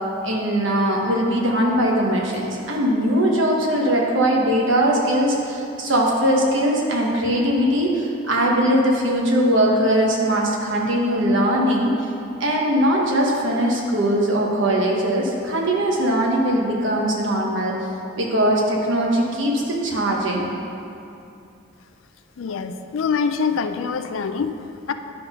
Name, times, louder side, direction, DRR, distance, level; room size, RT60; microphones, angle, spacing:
voice 1, 0.2-11.9 12.4-17.7 18.2-20.5, right 1 dB, 70° right, -1 dB, 1.2 m, -20 dB
voice 2, 22.4-24.9, left 5 dB, 80° left, 9 dB, 0.4 m, -25 dB
10.5 x 3.8 x 5.6 m, 2.6 s
head